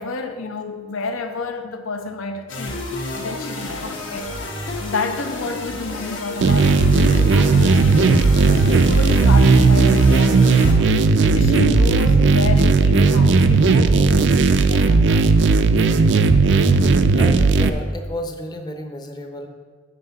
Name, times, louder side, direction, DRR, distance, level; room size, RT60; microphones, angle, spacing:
voice 1, 0.0-2.8 3.1-4.5 4.8-8.2 8.5-10.8 11.1-15.3, left 2 dB, 90° left, 0.7 m, -29 dB
sound 1, 2.5-10.7, left 2 dB, 75° left, 1.2 m, -30 dB
sound 2, 6.4-17.7, right 3 dB, 60° right, 0.4 m, -15 dB
voice 2, 17.1-19.5, equal, 20° left, 0.6 m, -32 dB
7.7 x 6.3 x 4.0 m
head